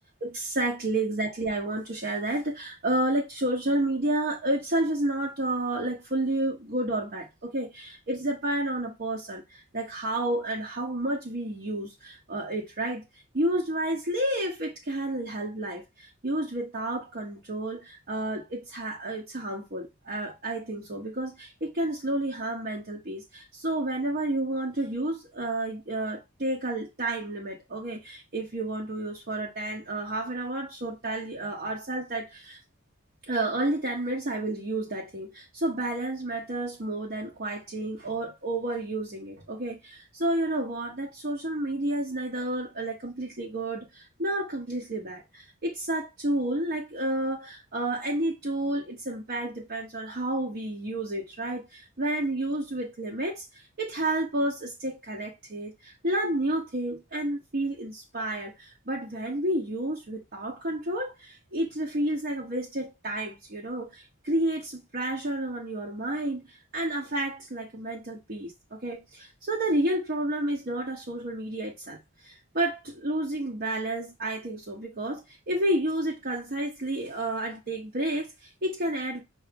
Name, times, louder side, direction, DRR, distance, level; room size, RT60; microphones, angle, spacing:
voice 1, 0.2-13.0 13.3-32.6 33.2-72.0 72.2-79.2, right 1 dB, 50° right, 0.9 m, -30 dB
5.8 x 2.6 x 3.4 m
head